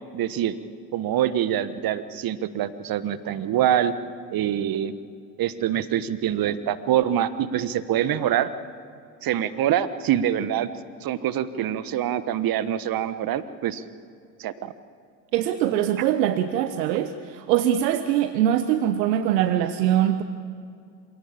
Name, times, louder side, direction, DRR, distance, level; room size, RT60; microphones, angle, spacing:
voice 1, 0.1-0.6 0.9-3.9 4.3-4.9 5.4-8.5 9.2-10.7 11.0-13.8 14.4-14.7 16.0-16.1, right 10 dB, 45° right, 13 dB, 1.3 m, -25 dB
voice 2, 15.3-20.2, right 11 dB, 70° right, 10 dB, 1.2 m, -22 dB
26.5 x 17.5 x 8.8 m, 2.4 s
hypercardioid pair, 75°, 50 cm